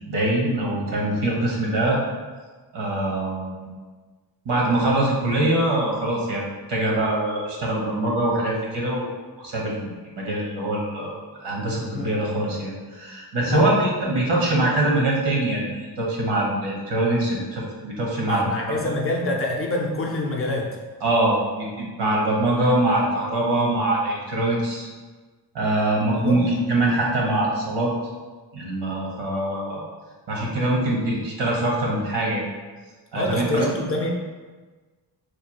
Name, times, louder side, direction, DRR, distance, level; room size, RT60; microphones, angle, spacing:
voice 1, 0.1-2.0 2.7-3.7 4.4-9.1 9.4-18.9 21.0-24.9 25.5-27.9 28.5-29.8 30.3-32.5 33.1-33.7, right 1 dB, 85° right, -3 dB, 1.1 m, -23 dB
voice 2, 18.3-20.8 26.2-26.4 33.1-34.1, left 2 dB, 35° left, 0 dB, 0.5 m, -26 dB
3.2 x 2.4 x 4.1 m, 1.3 s
cardioid pair, 130°, 41 cm